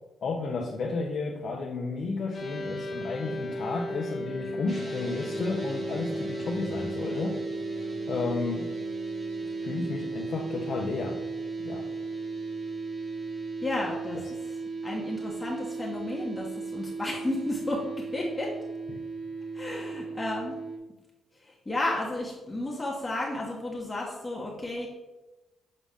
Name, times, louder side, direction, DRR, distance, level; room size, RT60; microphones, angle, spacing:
voice 1, 0.2-7.4 8.1-8.7 9.4-11.2 11.6-11.9 18.9-19.0, left 3 dB, 60° left, 0 dB, 0.8 m, -32 dB
sound 1, 2.3-13.9, left 1 dB, 40° left, 1.3 m, -39 dB
sound 2, 4.7-20.8, right 4 dB, 35° right, 1.5 m, -36 dB
voice 2, 13.6-14.2 14.8-17.8 18.1-18.5 19.5-20.6 21.4-24.9, left 2 dB, 20° left, -3 dB, 1.2 m, -32 dB
7.3 x 3.9 x 3.6 m, 1.1 s
cardioid pair, 75°, 0 cm